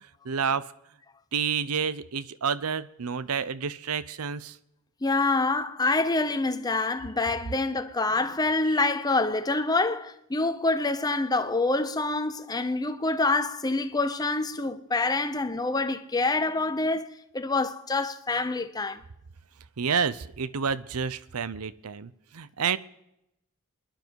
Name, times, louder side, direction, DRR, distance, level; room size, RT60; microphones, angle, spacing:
voice 1, 0.3-0.7 1.3-4.5 19.8-22.8, right 6 dB, 85° right, 0.7 m, -29 dB
voice 2, 5.0-17.1 17.3-19.0, left 3 dB, 20° left, 0.7 m, -26 dB
27.5 x 10.5 x 4.6 m
head